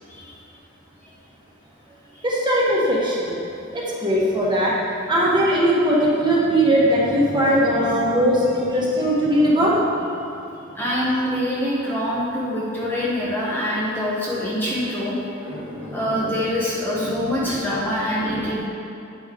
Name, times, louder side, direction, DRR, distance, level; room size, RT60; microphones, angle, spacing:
voice 1, 2.2-3.4 3.7-10.1 15.4-16.3 16.9-17.1 17.4-17.8 18.2-18.6, equal, 25° right, -6 dB, 1.3 m, -20 dB
voice 2, 10.7-15.2 15.9-18.7, left 1 dB, 10° left, -7 dB, 0.9 m, -25 dB
9.0 x 5.1 x 3.7 m, 2.7 s
head